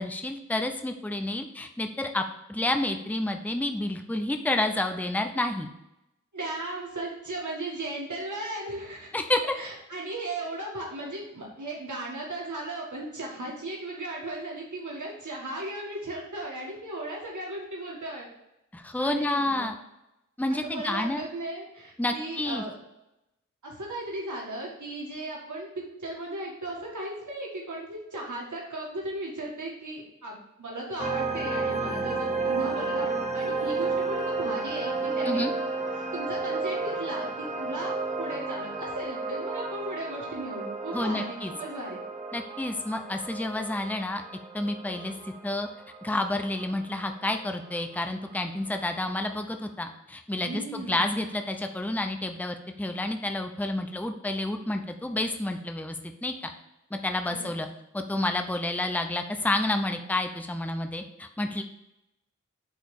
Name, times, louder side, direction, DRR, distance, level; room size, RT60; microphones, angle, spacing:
voice 1, 0.0-2.2 2.5-5.7 9.1-9.4 18.7-19.7 20.4-21.2 22.0-22.6 35.3-35.5 40.9-41.5 42.3-44.2 44.5-45.1 45.4-45.7 46.0-56.0 56.2-56.3 56.9-57.7 57.9-61.6, left 2 dB, 5° left, 6 dB, 0.7 m, -29 dB
voice 2, 6.3-9.1 9.6-18.3 19.0-19.7 20.5-22.7 23.6-35.5 35.9-42.0 50.4-51.0 57.3-57.5, right 1 dB, 70° right, -3 dB, 1.8 m, -36 dB
sound 1, 31.0-48.0, right 3 dB, 25° right, 1.3 m, -32 dB
8.2 x 3.3 x 6.5 m, 0.88 s
wide cardioid pair, 45°, 31 cm